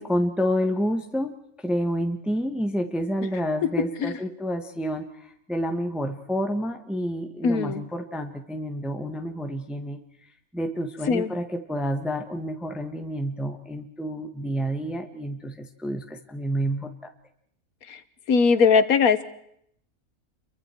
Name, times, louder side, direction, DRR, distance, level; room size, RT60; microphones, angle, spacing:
voice 1, 0.0-1.3 1.6-10.0 10.5-17.1, equal, ahead, 5 dB, 1.3 m, -29 dB
voice 2, 7.4-7.8 11.1-11.3 18.3-19.2, left 5 dB, 75° left, 12 dB, 1.6 m, -19 dB
29.5 x 24.0 x 4.6 m, 0.72 s
omnidirectional pair, 1.5 m